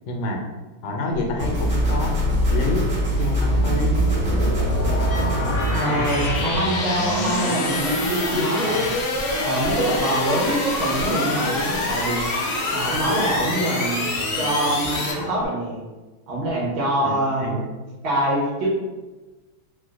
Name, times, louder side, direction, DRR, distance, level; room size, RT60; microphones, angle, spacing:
voice 1, 0.1-0.5 0.8-2.9 3.2-3.9 5.8-6.0 17.0-17.6, left 2 dB, 85° left, 1 dB, 1.4 m, -28 dB
sound 1, 1.3-15.1, left 2 dB, 70° left, 1.0 m, -25 dB
sound 2, 1.4-6.4, right 2 dB, 35° right, 1.3 m, -25 dB
sound 3, 5.1-15.4, left 1 dB, 40° left, 0.8 m, -34 dB
voice 2, 5.7-8.9 9.4-12.2 12.7-14.1 14.4-15.8 16.3-17.6 18.0-18.7, right 1 dB, 80° right, -5 dB, 1.8 m, -24 dB
4.2 x 2.2 x 2.4 m, 1.2 s
omnidirectional pair, 2.2 m